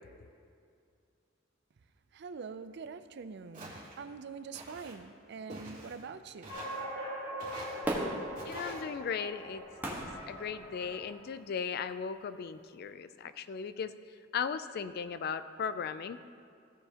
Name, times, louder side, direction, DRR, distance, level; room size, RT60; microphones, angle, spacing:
voice 1, 2.1-6.6, right 5 dB, 60° right, 11 dB, 0.4 m, -44 dB
Walk footsteps, 3.5-4.0 4.5-5.0 5.5-6.0 6.4-6.8 7.4-7.8 8.3-8.8, right 2 dB, 40° right, 2.2 m, -46 dB
sound 1, 6.5-11.3, equal, 80° left, 2.4 m, -42 dB
Fireworks, 7.8-11.2 11.7-11.8, right 1 dB, 10° right, 1.4 m, -38 dB
voice 2, 8.4-10.0 10.3-13.9 14.3-16.2, left 6 dB, 55° left, 13 dB, 0.4 m, -37 dB
16.0 x 7.0 x 2.9 m, 2.4 s
head